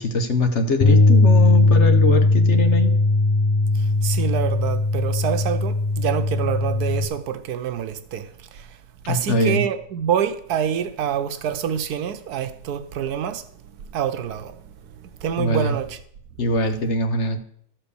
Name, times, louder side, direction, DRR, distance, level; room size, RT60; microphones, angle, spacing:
voice 1, 0.0-3.0 9.0-9.6 15.4-15.8 16.4-17.4, left 2 dB, 50° left, 1.2 m, -22 dB
Bass guitar, 0.8-7.1, left 2 dB, 30° left, 0.6 m, -18 dB
voice 2, 4.0-8.3 8.5-8.6 9.1-13.4 13.9-14.5 15.2-16.0, right 9 dB, 80° right, 1.3 m, -26 dB
13.0 x 4.5 x 6.9 m
omnidirectional pair, 1.7 m